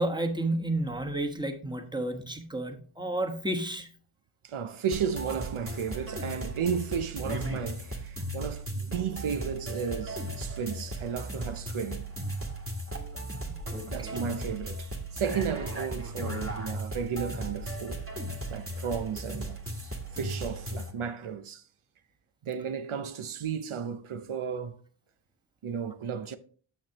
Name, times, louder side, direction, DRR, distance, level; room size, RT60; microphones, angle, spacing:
voice 1, 0.0-3.9 13.5-14.2, right 1 dB, 10° right, 1.3 m, -31 dB
voice 2, 4.4-12.1 13.9-18.1 18.5-19.6 20.1-21.6 22.4-24.8 25.6-26.4, right 7 dB, 75° right, 0.7 m, -34 dB
sound 1, 4.9-20.9, right 1 dB, 25° right, 1.8 m, -36 dB
9.3 x 7.2 x 2.9 m
wide cardioid pair, 70°, 49 cm